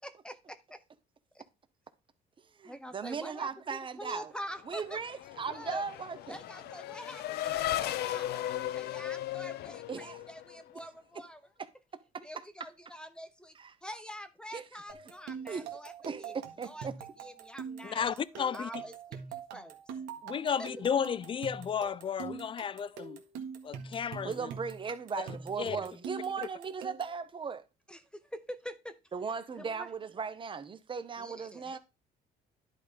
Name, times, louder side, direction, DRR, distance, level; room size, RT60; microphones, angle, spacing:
voice 1, 0.0-0.4 2.6-5.0 5.5-5.8 6.3-11.4 12.2-13.5 13.8-15.9 16.2-16.3 16.6-16.9 17.2-19.0 19.3-19.8 27.9-28.9 29.6-29.9 31.2-31.8, equal, 5° left, 1.0 m, -45 dB
voice 2, 2.6-4.3 4.7-6.4 9.9-10.2 13.6-13.7 14.5-14.6 15.5-15.7 16.0-16.9 24.2-27.7 29.1-31.8, right 6 dB, 30° right, 1.0 m, -37 dB
Race car auto racing / Accelerating revving vroom, 4.6-10.7, left 13 dB, 70° left, 0.6 m, -36 dB
sound 1, 14.9-27.2, right 6 dB, 85° right, 1.7 m, -44 dB
voice 3, 17.8-18.8 20.2-23.2 23.6-24.5 25.2-25.3 25.6-25.8, left 7 dB, 30° left, 0.5 m, -33 dB
10.5 x 3.7 x 5.2 m
cardioid pair, 110°, 17 cm